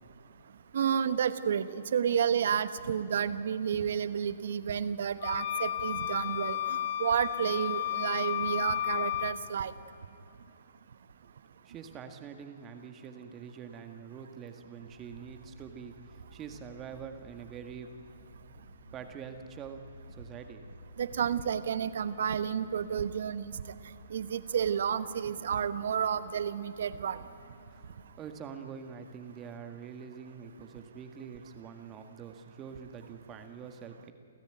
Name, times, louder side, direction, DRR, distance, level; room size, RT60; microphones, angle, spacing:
voice 1, 0.7-6.6 7.0-9.7 21.0-23.6 24.1-27.2, right 8 dB, 65° right, 13 dB, 1.1 m, -30 dB
sound 1, 5.2-9.4, left 12 dB, 50° left, 0.8 m, -33 dB
voice 2, 11.6-17.9 18.9-20.6 27.7-27.9 28.2-34.1, right 7 dB, 25° right, 7 dB, 1.8 m, -45 dB
sound 2, 14.7-28.0, right 1 dB, 90° right, 4.8 m, -55 dB
Wind instrument woodwind instrument, 23.0-28.9, left 2 dB, 90° left, 6.3 m, -61 dB
29.0 x 14.5 x 9.1 m, 2.9 s
hypercardioid pair, 135°, 0 cm